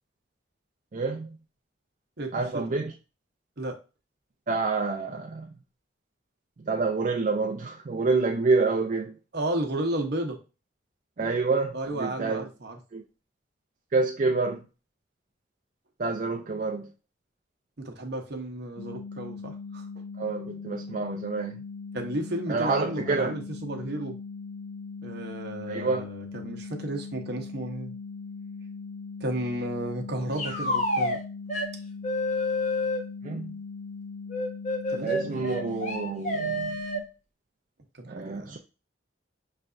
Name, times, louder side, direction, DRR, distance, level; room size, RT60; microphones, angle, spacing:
voice 1, 0.9-1.3 2.3-2.9 4.5-5.5 6.7-9.1 11.2-12.4 12.9-13.0 13.9-14.6 16.0-16.9 20.2-21.6 22.5-23.3 25.7-26.0 33.2-33.5 35.0-36.8 38.0-38.6, right 3 dB, 45° right, 0.4 m, -27 dB
voice 2, 2.2-2.8 3.6-3.8 9.3-10.4 11.7-12.8 17.8-19.9 21.9-24.2 25.0-27.9 29.2-31.2 34.9-35.6 37.9-38.6, right 1 dB, 60° right, 0.9 m, -33 dB
sound 1, 18.8-37.0, left 4 dB, 75° left, 0.6 m, -40 dB
sound 2, 30.4-31.2 31.5-31.7 32.0-33.0 34.3-37.0, left 1 dB, 40° left, 1.1 m, -28 dB
5.7 x 3.3 x 2.5 m
head